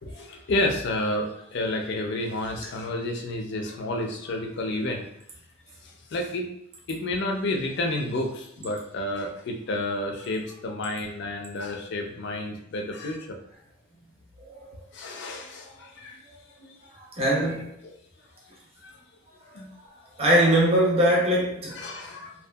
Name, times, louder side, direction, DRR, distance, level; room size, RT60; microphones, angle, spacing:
voice 1, 0.0-5.1 5.8-6.5 6.9-13.4 14.9-16.2 18.8-19.0 19.5-19.7 21.7-22.3, left 1 dB, 50° left, 2 dB, 0.4 m, -30 dB
voice 2, 17.0-17.7 20.2-21.7, right 1 dB, 30° right, -3 dB, 0.6 m, -22 dB
2.7 x 2.3 x 2.2 m, 0.74 s
head